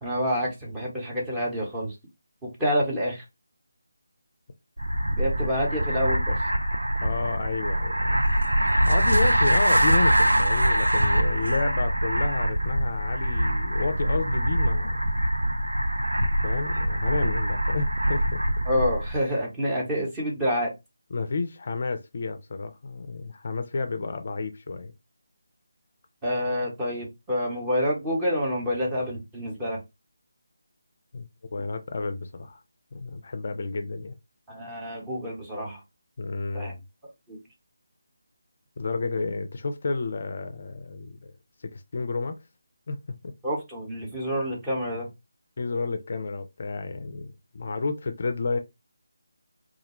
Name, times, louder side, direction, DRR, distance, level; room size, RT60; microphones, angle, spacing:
voice 1, 0.0-2.0 2.4-3.2 5.2-6.4 18.7-20.7 26.2-29.8 34.5-35.8 36.5-36.7 37.3-37.4 43.4-45.1, equal, 10° right, 0.8 m, -28 dB
sound 1, 4.8-19.2, right 1 dB, 80° right, 0.4 m, -24 dB
voice 2, 7.0-8.2 8.9-15.0 16.4-18.4 21.1-24.9 31.1-32.6 32.9-34.1 36.2-36.8 38.8-41.3 41.7-42.4 42.9-43.3 45.6-48.6, left 3 dB, 45° left, 0.4 m, -31 dB
2.3 x 2.1 x 2.9 m
figure-of-eight pair, 155°, 0 cm